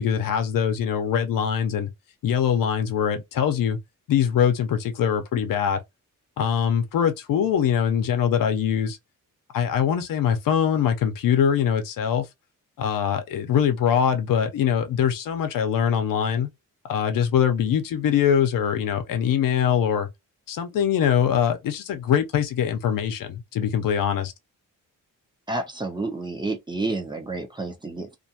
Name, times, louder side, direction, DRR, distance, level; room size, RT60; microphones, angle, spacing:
voice 1, 0.0-1.9 2.2-3.8 4.1-5.8 6.4-9.0 9.5-12.3 12.8-16.5 16.8-20.1 20.5-24.3, left 8 dB, 85° left, 0.7 m, -23 dB
voice 2, 25.5-28.2, right 2 dB, 15° right, 0.6 m, -30 dB
2.5 x 2.3 x 2.7 m
cardioid pair, 130°, 33 cm